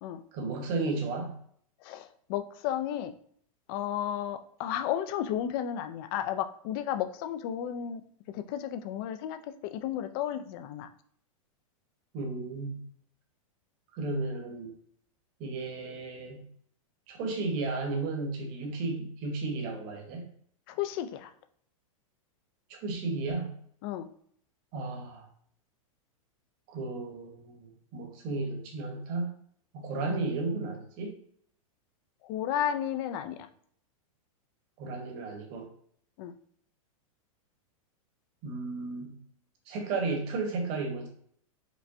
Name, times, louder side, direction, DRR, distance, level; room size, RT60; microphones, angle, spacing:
voice 1, 0.3-1.3 12.1-12.8 13.9-14.7 15.4-16.4 17.1-20.2 22.7-23.5 24.7-25.3 26.7-29.3 29.7-31.2 34.8-35.7 38.4-39.2 39.7-41.1, right 3 dB, 45° right, 2 dB, 1.1 m, -33 dB
voice 2, 1.8-3.1 3.7-10.9 20.7-21.3 23.8-24.1 32.2-33.5 36.2-36.4, left 10 dB, 40° left, 10 dB, 0.4 m, -33 dB
5.1 x 2.2 x 2.6 m, 0.62 s
supercardioid pair, 140°, 18 cm